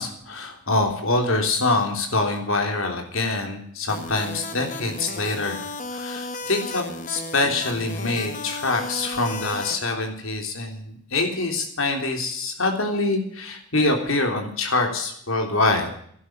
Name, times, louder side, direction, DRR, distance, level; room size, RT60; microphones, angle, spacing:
voice 1, 0.0-5.6 5.9-15.9, left 2 dB, 65° left, 4 dB, 3.4 m, -25 dB
sound 1, 3.9-9.8, left 3 dB, 35° left, 1.2 m, -34 dB
12.0 x 11.0 x 7.8 m, 0.64 s
head